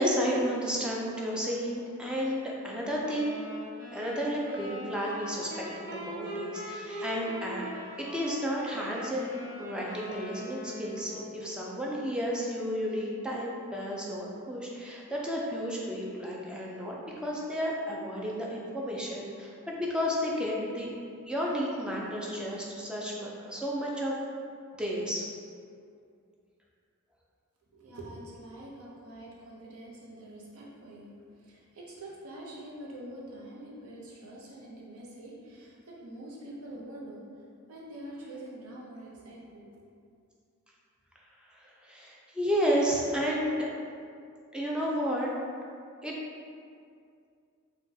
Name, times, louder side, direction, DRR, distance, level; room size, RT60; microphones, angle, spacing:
voice 1, 0.0-3.4 3.9-7.6 8.0-9.3 9.6-21.0 21.3-24.1 24.8-25.3 41.5-43.7 44.5-45.3 46.0-46.1, equal, 5° right, -4 dB, 0.3 m, -32 dB
sound 1, 3.0-11.4, equal, 45° right, 1.2 m, -41 dB
voice 2, 27.7-37.2 37.7-39.7, right 1 dB, 80° right, -4 dB, 0.7 m, -45 dB
3.8 x 2.2 x 2.7 m, 2.4 s
head